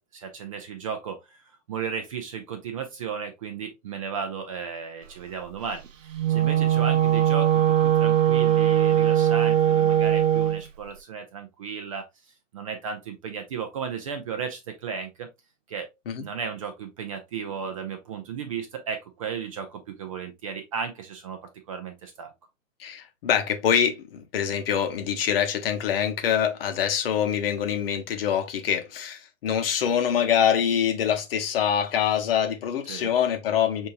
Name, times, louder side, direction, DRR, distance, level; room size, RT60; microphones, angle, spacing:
voice 1, 0.0-5.8 6.3-12.1 12.5-15.3 15.7-15.9 16.2-21.4 21.7-22.3 32.9-33.2, right 6 dB, 25° right, 0.5 m, -35 dB
Wind instrument woodwind instrument, 6.1-10.6, right 11 dB, 70° right, 0.7 m, -20 dB
voice 2, 22.8-33.9, left 8 dB, 45° left, 0.9 m, -25 dB
5.4 x 2.7 x 2.5 m
figure-of-eight pair, 125°, 39 cm